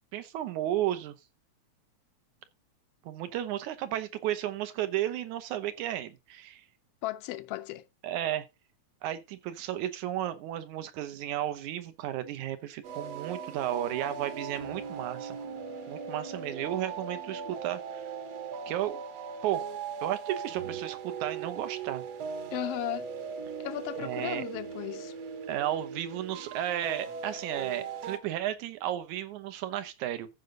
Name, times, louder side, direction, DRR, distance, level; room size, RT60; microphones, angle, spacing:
voice 1, 0.1-1.1 3.1-6.6 8.0-8.5 9.0-15.4 15.9-18.0 18.7-19.0 19.4-19.6 20.0-22.0 24.0-24.4 25.5-30.3, right 12 dB, 80° right, 2.4 m, -33 dB
voice 2, 7.0-7.8 22.5-23.1 23.6-25.1, left 15 dB, 80° left, 1.4 m, -35 dB
sound 1, 12.8-28.2, right 6 dB, 65° right, 2.2 m, -39 dB
14.5 x 5.3 x 3.8 m
omnidirectional pair, 3.4 m